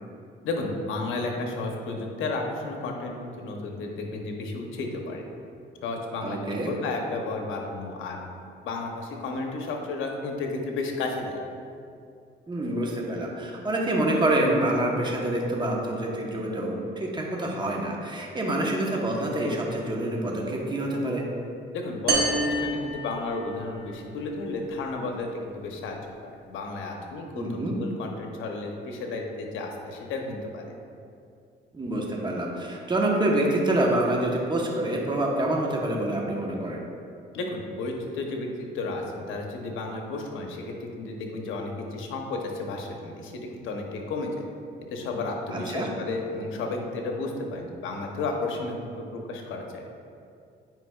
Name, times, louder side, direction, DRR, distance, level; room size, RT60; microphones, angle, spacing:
voice 1, 0.4-5.2 5.8-8.2 8.6-11.3 21.7-26.0 26.2-27.4 27.7-30.6 37.3-44.5 44.9-49.8, left 3 dB, 85° left, 2 dB, 0.9 m, -32 dB
voice 2, 6.2-6.7 12.5-21.2 27.3-27.8 31.7-36.9 45.5-45.9, right 1 dB, 20° right, -1 dB, 1.1 m, -26 dB
sound 1, 22.1-23.8, right 2 dB, 55° right, 1.1 m, -27 dB
9.2 x 5.0 x 2.4 m, 2.5 s
cardioid pair, 90°, 20 cm